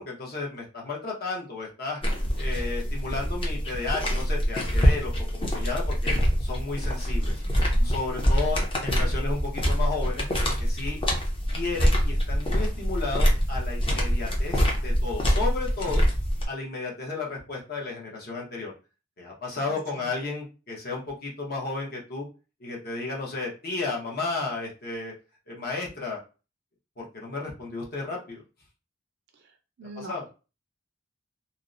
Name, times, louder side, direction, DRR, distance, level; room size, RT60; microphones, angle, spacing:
voice 1, 0.0-2.0 2.4-6.1 6.4-7.3 7.8-10.3 10.6-11.0 11.5-16.0 16.5-18.7 19.2-22.3 22.6-25.1 25.5-26.2 27.0-28.4 30.0-30.2, left 3 dB, 50° left, -2 dB, 0.8 m, -33 dB
sound 1, 2.0-16.5, equal, 25° left, 0.6 m, -25 dB
voice 2, 7.4-7.9 8.5-8.9 19.5-20.1 29.3-29.5 29.8-30.2, right 2 dB, 60° right, 4 dB, 0.4 m, -45 dB
2.7 x 2.0 x 2.4 m, 0.33 s
head